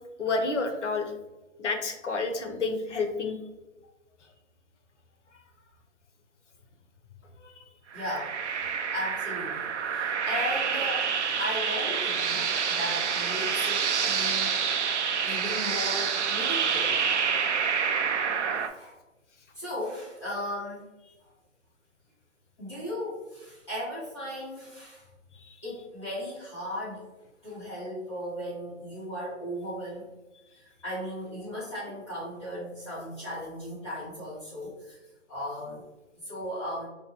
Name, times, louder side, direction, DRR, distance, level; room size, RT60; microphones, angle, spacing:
voice 1, 0.2-1.1 1.6-3.4 7.4-7.5 18.3-18.5 25.4-25.5, left 3 dB, 70° left, 5 dB, 0.8 m, -30 dB
voice 2, 7.9-8.4 8.9-11.1 11.4-14.6 15.2-16.9 18.6-19.0 19.5-20.8 22.6-25.1 25.6-27.0 27.4-30.1 30.5-35.0 35.3-35.8 36.2-36.9, equal, 25° left, -13 dB, 1.1 m, -36 dB
sound 1, 7.9-18.7, right 6 dB, 65° right, 0.5 m, -28 dB
5.1 x 2.2 x 2.9 m, 1.1 s
hypercardioid pair, 175°, 38 cm